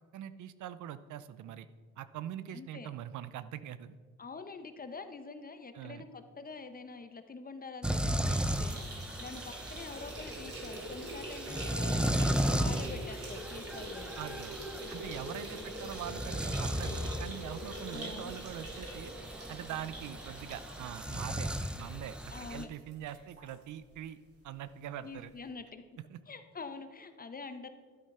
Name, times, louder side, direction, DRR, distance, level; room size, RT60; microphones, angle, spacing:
voice 1, 0.1-1.7 2.0-3.9 5.7-6.0 14.2-14.5 14.9-19.1 19.5-21.5 21.8-24.2 24.4-25.3 26.0-26.2, right 11 dB, 75° right, 14 dB, 0.6 m, -43 dB
voice 2, 2.5-2.9 4.2-8.8 9.2-14.1 14.8-15.2 15.5-15.9 17.9-18.3 22.3-22.7 25.0-25.8 26.3-27.7, left 4 dB, 30° left, 9 dB, 1.0 m, -46 dB
sound 1, 7.8-22.6, equal, 5° right, 0.6 m, -36 dB
sound 2, 8.2-23.6 23.9-24.0 24.3-24.4 25.4-25.5, right 1 dB, 50° right, 3.3 m, -44 dB
12.0 x 8.2 x 5.6 m, 1.5 s
cardioid pair, 90°, 30 cm